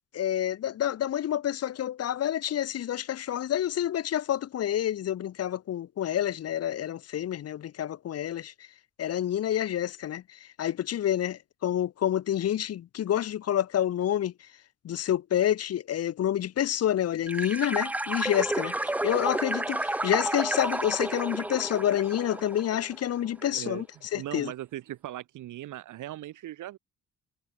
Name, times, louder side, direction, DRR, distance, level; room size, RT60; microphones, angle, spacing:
voice 1, 0.1-8.5 9.0-14.3 14.8-23.9 24.1-24.5, left 11 dB, 55° left, 0.8 m, -28 dB
sound 1, 17.3-23.0, right 1 dB, 5° right, 0.4 m, -31 dB
voice 2, 23.4-23.8 24.1-26.8, right 14 dB, 80° right, 4.0 m, -39 dB
cardioid pair, 90°, 30 cm